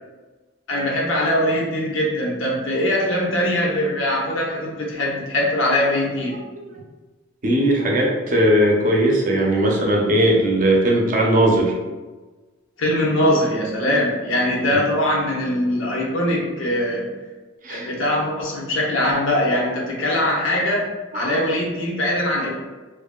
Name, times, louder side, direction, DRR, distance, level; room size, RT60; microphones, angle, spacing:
voice 1, 0.7-6.4 12.8-17.1 17.7-20.8 21.1-22.6, left 1 dB, 75° left, -3 dB, 0.7 m, -22 dB
voice 2, 7.4-11.7 17.6-17.9 21.1-21.4, right 1 dB, 40° right, -1 dB, 0.5 m, -18 dB
2.7 x 2.5 x 2.2 m, 1.3 s
head